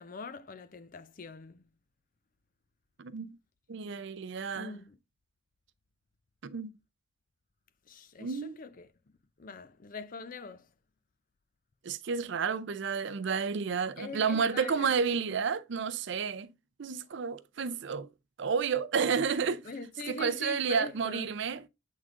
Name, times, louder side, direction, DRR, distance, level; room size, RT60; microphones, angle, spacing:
voice 1, 0.0-1.6 4.5-5.0 7.9-8.9 9.4-10.7 14.0-14.9 19.6-21.3, left 4 dB, 40° left, 0.5 m, -43 dB
voice 2, 3.0-3.3 3.7-4.7 6.4-6.7 8.2-8.6 11.8-16.5 16.8-18.1 18.4-19.7 20.1-21.7, right 6 dB, 60° right, 0.5 m, -31 dB
8.0 x 3.7 x 3.6 m
head